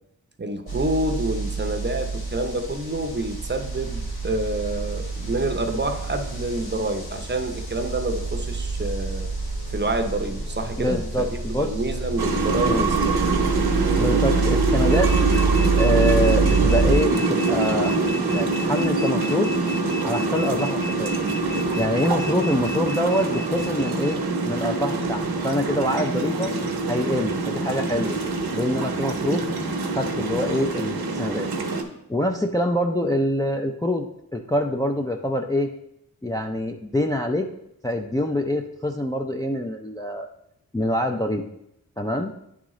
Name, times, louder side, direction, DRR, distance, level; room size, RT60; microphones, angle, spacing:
voice 1, 0.4-9.3 9.7-13.3 14.0-14.1 29.2-29.4, right 2 dB, 30° right, 6 dB, 0.6 m, -28 dB
sound 1, 0.7-16.9, right 4 dB, 75° left, 1.4 m, -27 dB
voice 2, 10.8-11.7 12.6-12.9 14.0-15.1 15.8-18.0 18.3-19.5 20.0-21.1 21.7-26.5 26.9-28.2 28.5-29.4 29.9-31.5 32.1-34.1 34.3-35.7 36.2-37.5 37.8-40.3 40.7-41.4 42.0-42.3, left 1 dB, 10° left, 2 dB, 0.4 m, -25 dB
sound 2, 12.2-31.8, right 3 dB, 80° right, 0.9 m, -24 dB
sound 3, 14.9-24.2, left 1 dB, 25° left, 0.9 m, -36 dB
10.0 x 3.7 x 3.1 m, 0.78 s
wide cardioid pair, 95°, 38 cm